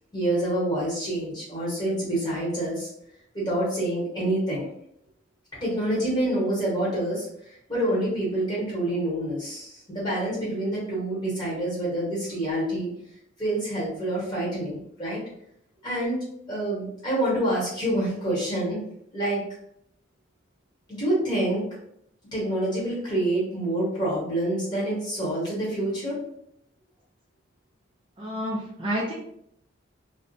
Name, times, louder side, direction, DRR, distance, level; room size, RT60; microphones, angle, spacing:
voice 1, 0.1-2.9 3.3-4.7 5.5-12.9 13.4-15.2 15.8-16.2 16.5-18.8 19.1-19.4 20.9-21.8 22.3-26.2, right 1 dB, 20° left, -7 dB, 1.0 m, -27 dB
voice 2, 28.2-29.1, equal, 25° right, -5 dB, 0.4 m, -29 dB
2.4 x 2.1 x 2.5 m, 0.73 s
head